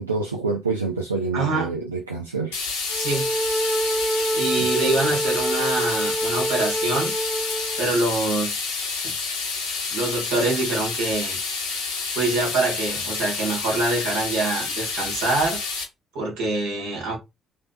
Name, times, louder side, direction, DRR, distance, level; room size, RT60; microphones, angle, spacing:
voice 1, 0.0-2.6 4.6-4.8, right 4 dB, 85° right, 0.3 m, -27 dB
voice 2, 1.3-1.7 3.0-3.3 4.3-7.1 7.8-8.8 9.9-11.4 12.1-15.6 16.1-17.2, right 2 dB, 65° right, 1.4 m, -25 dB
sound 1, 2.5-15.8, left 4 dB, 75° left, 0.9 m, -29 dB
sound 2, 2.9-7.9, right 1 dB, 10° right, 1.1 m, -26 dB
3.2 x 2.8 x 2.4 m
figure-of-eight pair, 45°, 0 cm